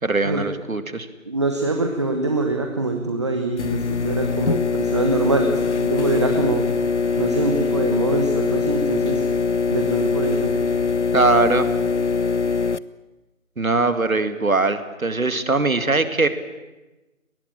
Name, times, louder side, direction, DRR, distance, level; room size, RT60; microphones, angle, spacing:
voice 1, 0.0-1.1 11.1-11.7 13.6-16.3, right 3 dB, 80° right, 11 dB, 2.4 m, -21 dB
voice 2, 1.2-6.7 7.2-9.2 9.7-10.5, right 2 dB, 20° right, 4 dB, 1.2 m, -24 dB
sound 1, 3.6-12.8, left 5 dB, 55° left, 0.8 m, -22 dB
24.0 x 19.5 x 8.8 m, 1.1 s
figure-of-eight pair, 165°, 41 cm